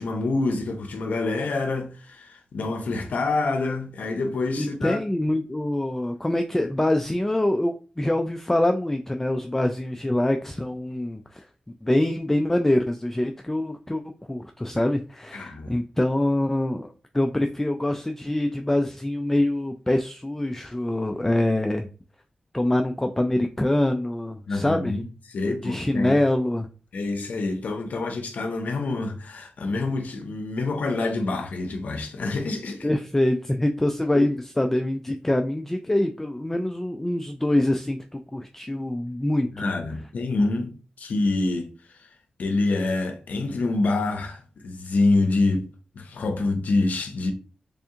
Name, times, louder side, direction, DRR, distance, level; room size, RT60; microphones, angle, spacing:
voice 1, 0.0-5.0 15.3-15.7 24.5-26.2 26.9-32.9 34.1-34.3 39.6-42.1 42.4-45.7 45.9-47.3, left 3 dB, 80° left, 0.6 m, -26 dB
voice 2, 4.6-11.5 11.8-14.0 14.3-21.9 22.5-25.0 25.6-26.7 32.8-39.7, left 1 dB, 10° left, 0.4 m, -25 dB
3.4 x 2.7 x 3.6 m
cardioid pair, 70°, 3 cm